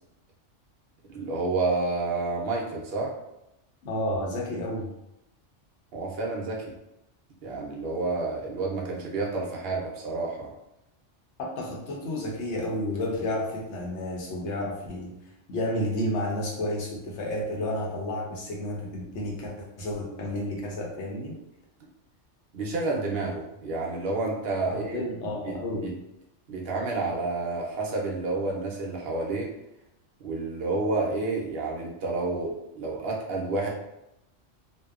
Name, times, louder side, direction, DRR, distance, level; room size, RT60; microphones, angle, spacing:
voice 1, 1.1-3.1 5.9-6.7 7.4-10.5 22.5-25.0 25.4-25.6 25.8-25.9 26.5-29.5 30.2-33.7, right 3 dB, 60° right, -1 dB, 0.8 m, -29 dB
voice 2, 3.8-4.9 11.4-15.1 15.5-21.3 24.7-25.9, left 1 dB, 70° left, -2 dB, 1.0 m, -31 dB
2.7 x 2.2 x 2.3 m, 0.86 s
omnidirectional pair, 1.2 m